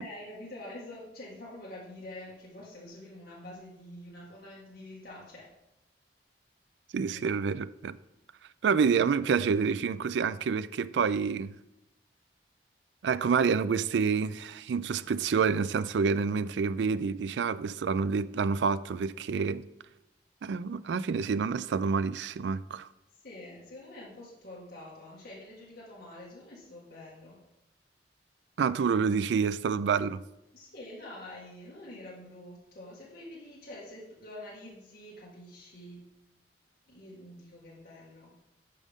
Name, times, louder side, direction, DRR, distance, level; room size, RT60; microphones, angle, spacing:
voice 1, 0.0-5.5 7.1-7.4 23.1-27.4 30.5-36.1 36.9-38.4, left 1 dB, 60° left, 1.8 m, -46 dB
voice 2, 6.9-8.0 8.6-11.5 13.0-19.7 20.4-22.9 28.6-30.2, right 5 dB, 80° right, 0.3 m, -28 dB
11.0 x 5.3 x 3.6 m
head